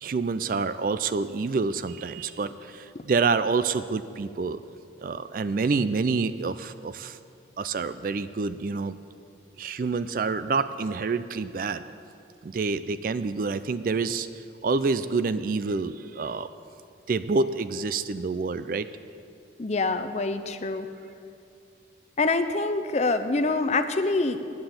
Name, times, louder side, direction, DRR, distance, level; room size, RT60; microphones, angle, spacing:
voice 1, 0.0-4.6 5.0-7.2 7.6-9.0 9.6-11.8 12.4-14.3 14.6-16.5 17.1-18.9, right 4 dB, 50° right, 13 dB, 0.4 m, -27 dB
voice 2, 19.6-20.9 22.2-24.4, left 3 dB, 35° left, 9 dB, 0.5 m, -25 dB
9.6 x 7.9 x 8.7 m, 2.4 s
head